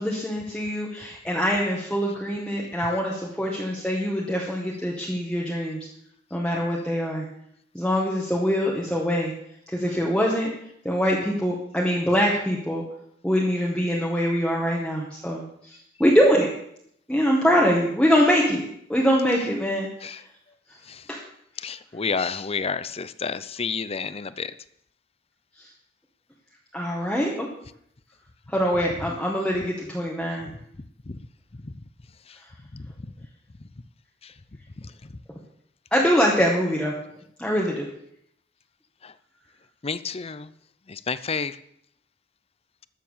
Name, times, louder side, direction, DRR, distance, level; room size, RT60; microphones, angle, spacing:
voice 1, 0.0-5.8 6.3-7.3 7.7-9.3 9.7-10.5 10.9-12.8 13.2-16.5 17.1-19.9 21.1-21.2 26.7-27.5 28.5-30.5 35.9-36.9 37.4-37.9, equal, 5° left, -3 dB, 1.8 m, -23 dB
voice 2, 21.6-24.5 31.1-31.2 31.5-31.7 32.3-32.4 32.7-33.1 34.2-34.3 34.8-35.1 39.0-39.1 39.8-40.5 40.9-41.6, left 5 dB, 30° left, 14 dB, 0.6 m, -31 dB
13.0 x 7.5 x 7.3 m, 0.71 s
head